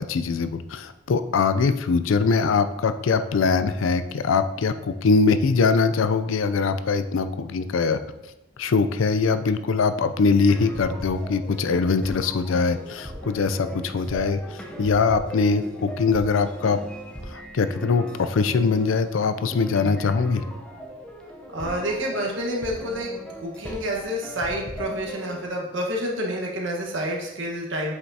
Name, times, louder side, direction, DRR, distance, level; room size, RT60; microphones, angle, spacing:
voice 1, 0.0-8.0 8.6-16.8 17.3-20.4, left 4 dB, 75° left, 11 dB, 0.4 m, -22 dB
sound 1, 10.2-25.5, equal, 5° left, 0.7 m, -38 dB
voice 2, 19.8-20.1 21.5-23.1 23.4-28.0, equal, 65° right, -1 dB, 1.3 m, -29 dB
7.8 x 5.8 x 2.8 m, 0.93 s
head